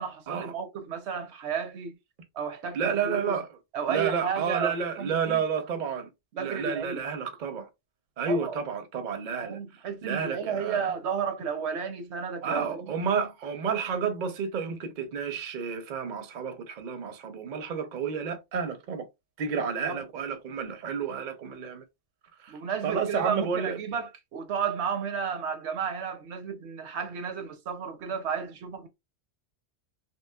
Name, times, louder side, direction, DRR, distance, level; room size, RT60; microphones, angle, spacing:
voice 1, 0.0-2.0 2.3-2.8 3.0-3.4 3.7-5.4 6.3-7.0 8.3-8.6 9.4-12.9 19.8-20.0 22.5-28.9, right 7 dB, 75° right, 0.9 m, -32 dB
voice 2, 2.7-3.5 3.9-6.1 6.4-7.7 8.2-10.9 12.4-19.1 19.4-21.8 22.4-23.8, right 6 dB, 50° right, 0.6 m, -31 dB
3.0 x 2.9 x 2.2 m
omnidirectional pair, 1.1 m